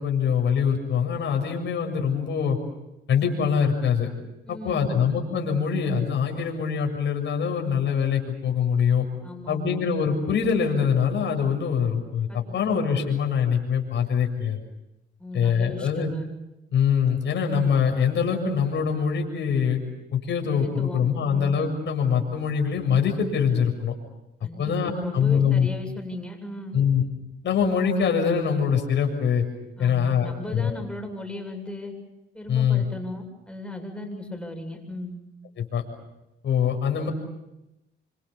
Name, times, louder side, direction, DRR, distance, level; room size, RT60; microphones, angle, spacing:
voice 1, 0.0-2.6 3.1-4.1 4.5-9.0 9.5-14.6 15.3-16.1 16.7-19.8 20.1-23.9 24.6-25.7 26.7-27.0 27.4-29.4 29.8-30.7 32.5-32.8 35.6-35.8 36.4-37.1, left 7 dB, 65° left, 2 dB, 7.0 m, -23 dB
voice 2, 4.5-5.1 9.2-9.8 12.3-12.8 15.2-16.3 20.6-21.5 24.4-26.8 29.8-31.9 32.3-35.2, left 1 dB, 5° left, 3 dB, 8.0 m, -37 dB
27.5 x 26.0 x 7.2 m, 0.94 s
cardioid pair, 90°, 20 cm